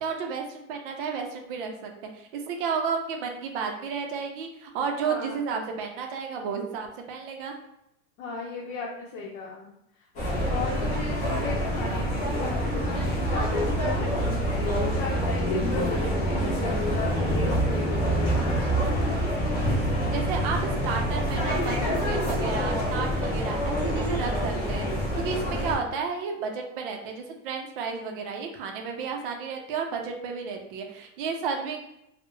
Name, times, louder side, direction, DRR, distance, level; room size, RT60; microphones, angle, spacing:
voice 1, 0.0-7.6 20.1-31.8, right 5 dB, 45° right, 3 dB, 0.4 m, -32 dB
voice 2, 5.0-5.4 8.2-9.7 10.5-18.6, left 3 dB, 80° left, -2 dB, 0.6 m, -36 dB
sound 1, 10.2-25.8, equal, 20° left, 0.4 m, -26 dB
2.2 x 2.0 x 2.9 m, 0.81 s
supercardioid pair, 155°, 40 cm